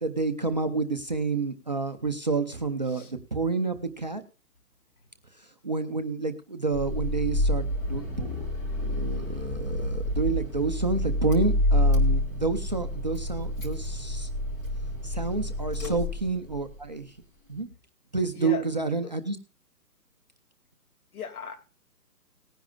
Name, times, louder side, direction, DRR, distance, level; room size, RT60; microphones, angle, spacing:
voice 1, 0.0-4.2 5.3-8.5 8.8-14.3 15.0-17.2 17.5-17.7 18.1-19.4, right 4 dB, 30° right, 6 dB, 0.6 m, -29 dB
Car / Engine starting, 6.7-16.8, left 1 dB, 10° left, 1.1 m, -28 dB
voice 2, 18.3-18.7 19.0-19.1 21.1-21.6, left 6 dB, 60° left, 6 dB, 2.7 m, -37 dB
19.0 x 10.0 x 2.3 m, 0.33 s
hypercardioid pair, 160°, 48 cm